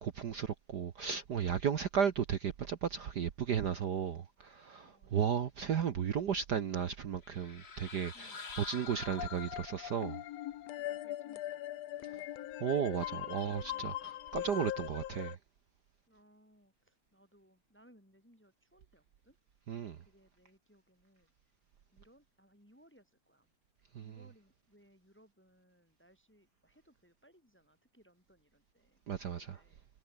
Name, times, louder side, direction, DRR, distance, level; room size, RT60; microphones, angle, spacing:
voice 1, 0.0-8.3 8.6-10.2 12.6-15.4 19.7-20.0 23.9-24.1 29.1-29.6, right 8 dB, 75° right, 0.9 m, -34 dB
voice 2, 4.8-5.4 8.1-8.4 10.8-11.6 11.9-12.3 13.6-13.9 16.1-19.4 20.0-21.3 21.9-23.5 24.0-29.9, equal, 5° left, 7.7 m, -66 dB
sound 1, 7.2-9.9, left 5 dB, 30° left, 1.1 m, -47 dB
sound 2, 8.9-15.4, left 13 dB, 70° left, 2.0 m, -41 dB
omnidirectional pair, 3.3 m